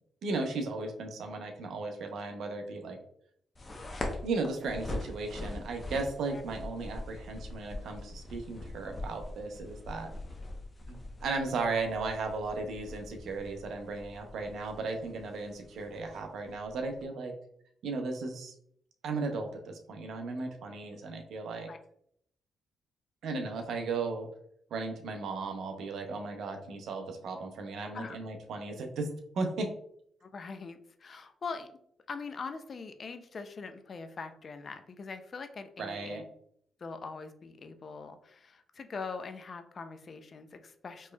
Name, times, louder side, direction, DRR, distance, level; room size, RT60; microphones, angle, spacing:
voice 1, 0.2-3.0 4.2-10.1 10.9-17.3 17.8-18.5 19.0-21.7 23.2-24.3 24.7-29.7 35.8-36.2, right 3 dB, 75° right, 4 dB, 0.6 m, -36 dB
sound 1, 3.5-17.0, left 2 dB, 30° left, 0.8 m, -43 dB
voice 2, 30.2-31.7 32.1-36.2 36.8-41.1, left 4 dB, 45° left, 9 dB, 0.4 m, -42 dB
4.2 x 3.1 x 2.2 m, 0.69 s
cardioid pair, 80°, 0 cm